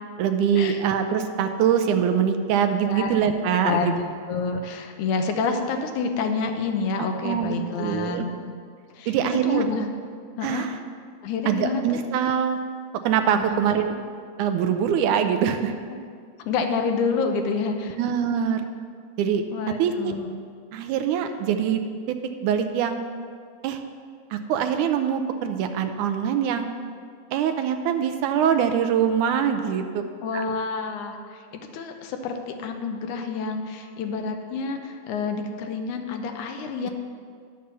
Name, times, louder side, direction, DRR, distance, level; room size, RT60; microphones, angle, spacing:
voice 1, 0.2-3.9 7.2-8.3 9.1-9.7 10.4-10.7 11.5-12.6 13.0-14.0 14.4-15.7 18.0-18.7 19.2-19.4 19.8-20.1 20.7-21.8 22.1-22.2 22.4-23.0 23.6-23.8 24.3-26.7 27.3-30.0 30.3-30.4 36.8-36.9, right 8 dB, 80° right, 7 dB, 2.0 m, -23 dB
voice 2, 2.8-3.2 3.6-8.3 9.0-9.9 10.4-10.7 11.2-12.0 13.4-13.6 15.9-16.0 16.4-18.0 19.5-20.3 30.2-36.9, left 4 dB, 80° left, 5 dB, 2.2 m, -28 dB
11.0 x 6.6 x 6.8 m, 2.1 s
omnidirectional pair, 3.6 m